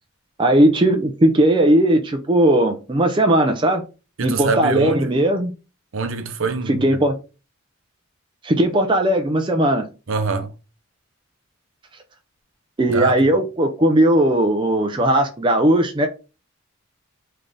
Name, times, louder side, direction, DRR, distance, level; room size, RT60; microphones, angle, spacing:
voice 1, 0.4-3.8 4.2-5.5 6.7-7.2 8.4-9.9 12.8-16.1, right 1 dB, 20° right, 0.4 m, -17 dB
voice 2, 4.2-5.1 5.9-6.9 10.1-10.5 12.9-13.3, right 4 dB, 65° right, 0.7 m, -24 dB
3.7 x 3.3 x 3.8 m
head